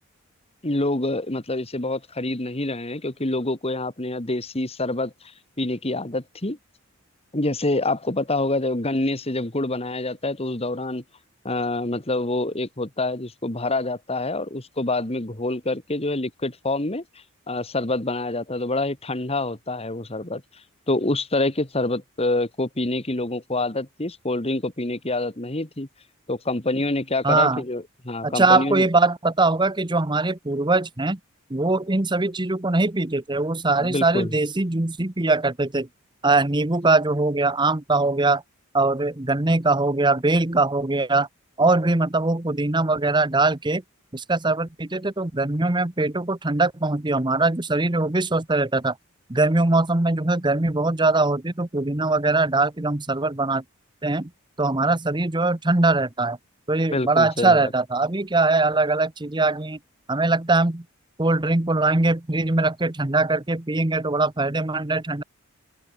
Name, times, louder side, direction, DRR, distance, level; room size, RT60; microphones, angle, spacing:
voice 1, 0.6-5.1 5.6-6.6 7.3-11.0 11.4-17.0 17.5-20.4 20.9-25.9 26.3-28.8 33.8-34.3 56.9-57.7, left 2 dB, 30° left, 2.0 m, -26 dB
voice 2, 27.2-27.6 28.2-31.2 31.5-35.9 36.2-38.4 38.7-41.3 41.6-43.8 44.1-48.9 49.3-53.6 54.0-54.3 54.6-56.4 56.7-59.8 60.1-60.8 61.2-65.2, right 2 dB, 20° right, 1.1 m, -22 dB
open air
head